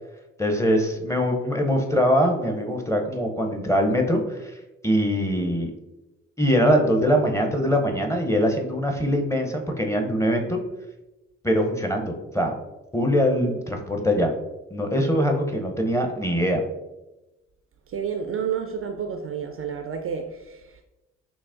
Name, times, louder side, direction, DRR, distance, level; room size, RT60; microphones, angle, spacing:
voice 1, 0.4-4.5 4.8-5.7 6.4-10.6 11.4-12.5 12.9-14.3 14.7-16.6, equal, 10° left, 3 dB, 0.6 m, -22 dB
voice 2, 17.9-20.8, right 7 dB, 40° right, 5 dB, 0.4 m, -30 dB
5.8 x 2.1 x 2.5 m, 1.0 s
figure-of-eight pair, 40°, 37 cm